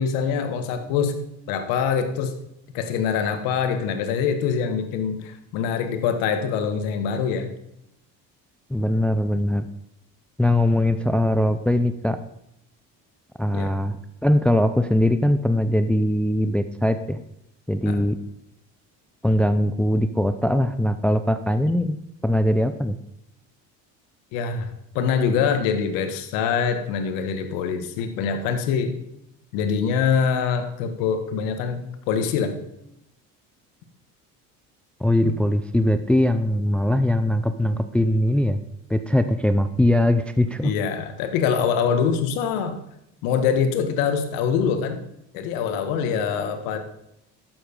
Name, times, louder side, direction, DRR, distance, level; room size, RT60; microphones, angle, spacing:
voice 1, 0.0-2.3 2.7-7.5 13.5-13.7 17.8-18.0 24.3-28.9 29.5-31.8 32.1-32.6 35.2-35.3 40.6-42.8 43.2-45.0 45.3-46.8, left 6 dB, 90° left, 8 dB, 1.6 m, -24 dB
voice 2, 8.7-9.7 10.4-12.2 13.4-14.0 14.2-17.2 17.7-18.2 19.2-22.0 22.2-23.0 35.0-38.6 38.9-40.7, left 1 dB, 5° left, 10 dB, 0.4 m, -21 dB
11.5 x 7.9 x 5.3 m, 0.81 s
cardioid pair, 125°, 33 cm